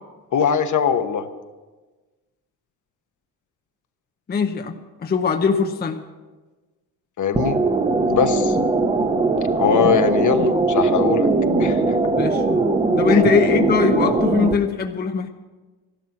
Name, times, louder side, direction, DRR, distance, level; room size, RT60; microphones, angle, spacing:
voice 1, 0.3-1.2 7.2-7.6 8.1-8.6 9.6-11.3 11.6-12.1 13.1-13.2, left 7 dB, 50° left, 8 dB, 1.1 m, -21 dB
voice 2, 4.3-4.7 5.0-6.0 12.2-12.4 13.0-15.3, left 5 dB, 25° left, 5 dB, 0.8 m, -20 dB
sound 1, 7.4-14.5, right 3 dB, 15° right, 1.0 m, -20 dB
14.0 x 12.0 x 5.9 m, 1.3 s
cardioid pair, 115°, 39 cm